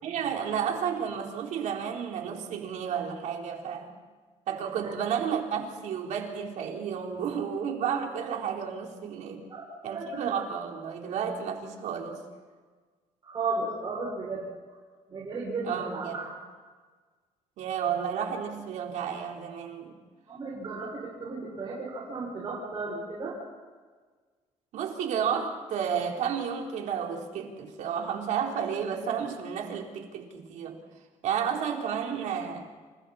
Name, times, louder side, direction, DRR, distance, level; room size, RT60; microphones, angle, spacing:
voice 1, 0.0-4.0 4.5-9.5 9.8-12.2 15.6-16.2 17.6-20.0 24.7-30.8 31.2-32.7, right 7 dB, 75° right, 1 dB, 4.1 m, -32 dB
voice 2, 9.5-10.3 13.2-14.5 15.1-16.3 20.3-23.3, right 3 dB, 35° right, -5 dB, 6.7 m, -34 dB
30.0 x 29.0 x 4.4 m, 1.5 s
cardioid pair, 160°, 13 cm